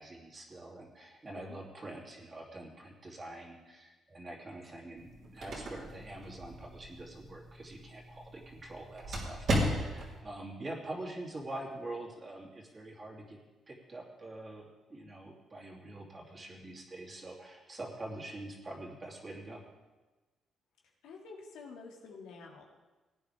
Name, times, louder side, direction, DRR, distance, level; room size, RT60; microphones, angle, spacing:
voice 1, 0.0-13.4 13.7-19.6, right 2 dB, 30° right, -2 dB, 2.9 m, -45 dB
sound 1, 5.0-10.2, equal, 60° right, 3.4 m, -36 dB
voice 2, 21.0-22.6, left 4 dB, 90° left, -1 dB, 2.2 m, -49 dB
18.0 x 9.2 x 3.5 m, 1.2 s
cardioid pair, 90°, 0 cm